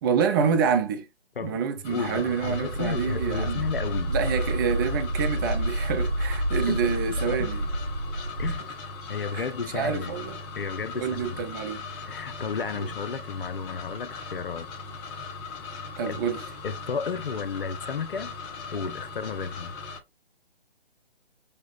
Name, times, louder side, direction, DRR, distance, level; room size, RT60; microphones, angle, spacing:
voice 1, 0.0-1.1 1.4-3.6 4.1-7.6 9.3-9.5 9.7-10.4 10.9-11.9 12.8-12.9 16.0-16.4, right 6 dB, 20° right, 0.8 m, -27 dB
sound 1, 1.8-20.0, left 4 dB, 10° left, 0.5 m, -39 dB
voice 2, 1.9-4.1 6.7-6.8 7.3-7.5 8.4-8.6 9.1-10.1 10.6-11.4 12.0-14.7 16.1-16.2 16.6-18.3 18.7-19.8, left 6 dB, 65° left, 0.8 m, -33 dB
sound 2, 2.4-8.6, right 1 dB, 55° right, 1.0 m, -29 dB
6.8 x 2.3 x 3.4 m
figure-of-eight pair, 140°, 30 cm